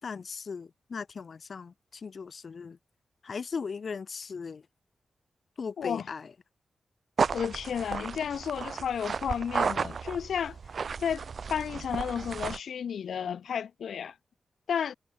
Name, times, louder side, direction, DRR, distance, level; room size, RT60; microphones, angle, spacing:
voice 1, 0.0-2.8 3.2-4.6 5.6-6.3, left 5 dB, 45° left, 6.1 m, -38 dB
sound 1, 7.2-12.6, right 5 dB, 50° right, 0.5 m, -33 dB
voice 2, 7.3-10.6 11.0-14.2 14.7-14.9, left 8 dB, 90° left, 2.3 m, -32 dB
wide cardioid pair, 160°, 0 cm